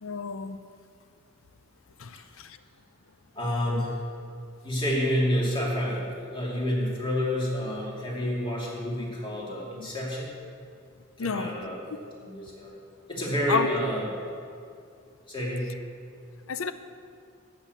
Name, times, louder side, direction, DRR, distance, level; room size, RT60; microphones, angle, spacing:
voice 1, 0.0-0.6 2.0-2.6 11.2-11.6 13.5-13.7 16.5-16.7, left 5 dB, 85° left, 11 dB, 0.6 m, -30 dB
voice 2, 3.3-4.0 4.6-10.3 11.2-11.8 12.2-12.7 13.1-14.1 15.3-15.7, equal, 25° left, -4 dB, 2.6 m, -29 dB
12.0 x 6.1 x 8.1 m, 2.3 s
head